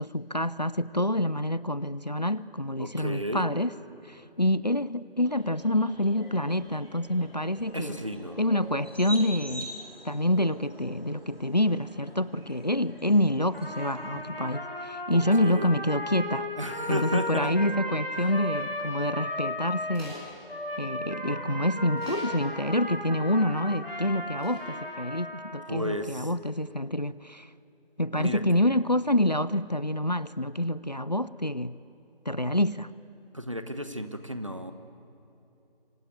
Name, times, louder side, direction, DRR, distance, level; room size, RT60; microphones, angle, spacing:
voice 1, 0.0-3.7 4.1-8.0 8.4-9.8 10.0-16.5 16.9-20.1 20.8-27.5 28.0-31.8 32.3-32.9, left 1 dB, 45° left, 17 dB, 0.6 m, -27 dB
voice 2, 2.8-3.5 7.7-8.4 15.1-15.7 16.6-17.5 25.3-25.4 25.7-26.3 28.2-28.4 33.3-34.7, equal, 35° right, 10 dB, 1.2 m, -33 dB
sound 1, 5.2-14.2, equal, 90° right, 7.6 m, -45 dB
Trumpet, 13.5-20.0 20.5-25.8, left 1 dB, 75° left, 6.7 m, -35 dB
sound 2, 19.9-20.3 21.8-22.4 24.4-24.7, left 2 dB, ahead, 2.8 m, -44 dB
25.5 x 24.0 x 9.4 m, 3.0 s
figure-of-eight pair, 175°, 29 cm